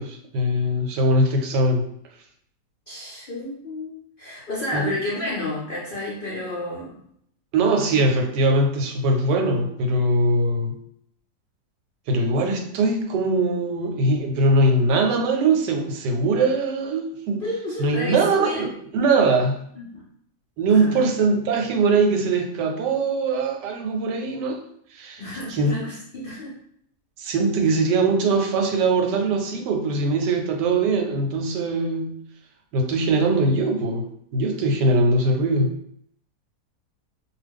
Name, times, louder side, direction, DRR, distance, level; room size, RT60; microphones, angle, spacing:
voice 1, 0.0-1.9 4.7-4.9 7.5-10.7 12.1-17.4 17.8-19.6 20.6-24.6 24.9-25.2 25.5-25.8 27.2-32.2 32.7-34.0 34.3-35.7, right 2 dB, 90° right, 3 dB, 1.2 m, -21 dB
voice 2, 2.9-7.0 17.4-18.6 19.8-20.0 20.7-20.9 25.2-26.5, left 1 dB, 85° left, -6 dB, 0.4 m, -31 dB
2.5 x 2.3 x 3.4 m, 0.70 s
omnidirectional pair, 1.8 m